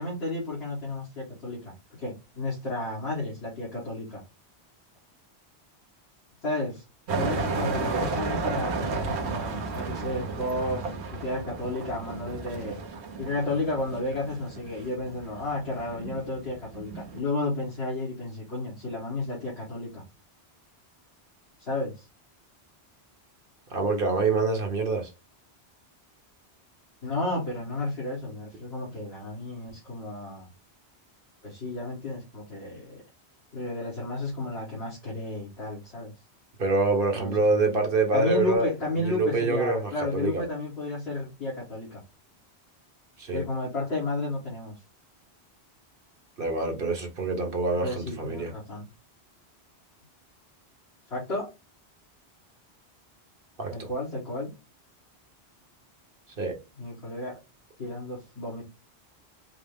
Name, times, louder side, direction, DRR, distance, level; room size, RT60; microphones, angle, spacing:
voice 1, 0.0-1.7 2.0-4.2 6.4-6.8 7.1-12.8 13.2-20.0 21.6-22.1 27.0-30.5 31.4-33.0 33.5-36.1 37.1-37.8 38.1-42.0 43.3-44.7 47.8-48.9 51.1-51.5 53.7-54.5 56.8-57.3 57.8-58.6, left 2 dB, 70° left, 1.9 m, -32 dB
sound 1, 7.1-17.2, right 4 dB, 80° right, 1.2 m, -33 dB
voice 2, 23.7-25.1 36.6-38.7 39.0-40.4 43.2-43.4 46.4-48.5 53.6-53.9 56.4-56.5, right 3 dB, 55° right, 1.2 m, -26 dB
5.0 x 2.0 x 3.5 m
omnidirectional pair, 1.1 m